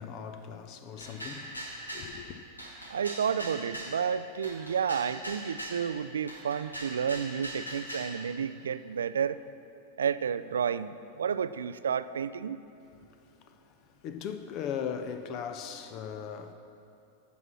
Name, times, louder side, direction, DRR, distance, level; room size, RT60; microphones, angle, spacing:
voice 1, 0.0-2.4 13.0-16.5, left 7 dB, 40° left, 0.7 m, -39 dB
sound 1, 1.0-2.1 2.6-4.0 4.4-5.8 6.3-8.1, right 1 dB, 85° left, 2.2 m, -40 dB
voice 2, 2.9-9.4 10.0-12.6, right 7 dB, 65° right, 0.3 m, -31 dB
15.5 x 6.0 x 6.0 m
figure-of-eight pair, 90°, 0 cm